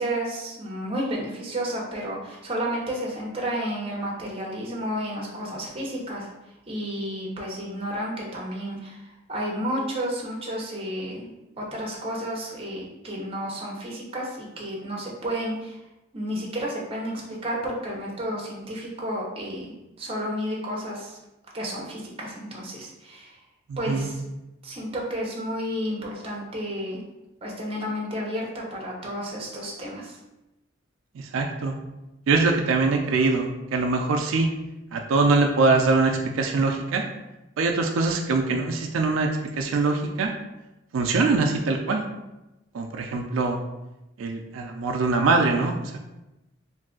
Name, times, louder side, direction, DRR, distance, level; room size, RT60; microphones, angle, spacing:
voice 1, 0.0-6.3 6.7-15.8 16.1-19.7 20.0-21.2 21.5-23.4 23.8-24.2 24.6-27.0 27.4-30.2, equal, 30° right, -2 dB, 0.6 m, -31 dB
voice 2, 23.7-24.1 31.2-31.7 32.3-34.5 34.9-37.0 37.6-39.3 39.6-40.3 40.9-42.0 42.7-43.6 44.2-46.0, right 3 dB, 85° right, 3 dB, 0.3 m, -23 dB
2.6 x 2.3 x 3.6 m, 0.98 s
head